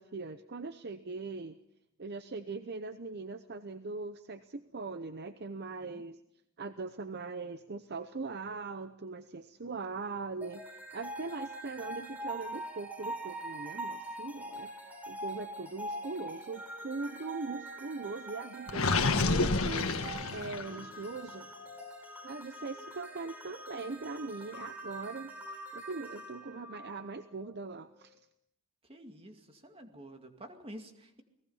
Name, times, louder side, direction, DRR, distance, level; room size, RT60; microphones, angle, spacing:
voice 1, 0.0-1.6 2.0-6.2 6.6-10.6 10.9-21.5 22.2-25.3 25.7-28.2, right 3 dB, 45° right, 10 dB, 0.8 m, -41 dB
sound 1, 10.4-27.6, right 1 dB, 5° right, 3.9 m, -44 dB
Gurgling, 18.7-20.8, left 3 dB, 65° left, 1.6 m, -29 dB
voice 2, 28.9-31.2, right 1 dB, 25° right, 5 dB, 2.3 m, -49 dB
29.5 x 19.5 x 5.6 m, 0.75 s
head